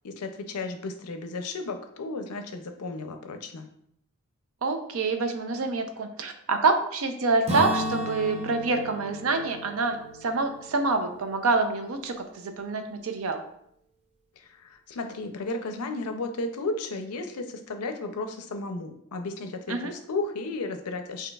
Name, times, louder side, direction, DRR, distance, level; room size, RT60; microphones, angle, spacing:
voice 1, 0.0-3.7 14.4-21.3, left 3 dB, 85° left, 6 dB, 0.5 m, -34 dB
voice 2, 4.6-13.4 19.7-19.9, right 3 dB, 65° right, 6 dB, 0.5 m, -27 dB
Acoustic guitar / Strum, 7.5-11.4, right 1 dB, 30° right, 0.7 m, -33 dB
5.9 x 2.8 x 2.3 m, 0.72 s
head